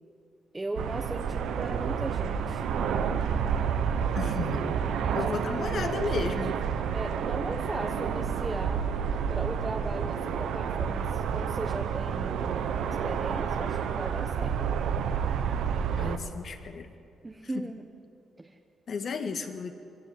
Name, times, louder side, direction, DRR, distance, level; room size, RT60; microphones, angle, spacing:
voice 1, 0.5-2.6 5.1-6.3 6.9-8.8 9.3-12.7 13.0-14.5 17.2-17.9 18.4-18.6, right 2 dB, 15° right, 3 dB, 1.1 m, -38 dB
sound 1, 0.8-16.2, right 7 dB, 90° right, 1.1 m, -29 dB
voice 2, 4.2-4.8 5.1-6.6 16.0-16.9 17.5-17.7 18.9-19.7, left 5 dB, 55° left, 6 dB, 1.8 m, -33 dB
23.5 x 16.0 x 8.0 m, 2.6 s
cardioid pair, 110°, 0 cm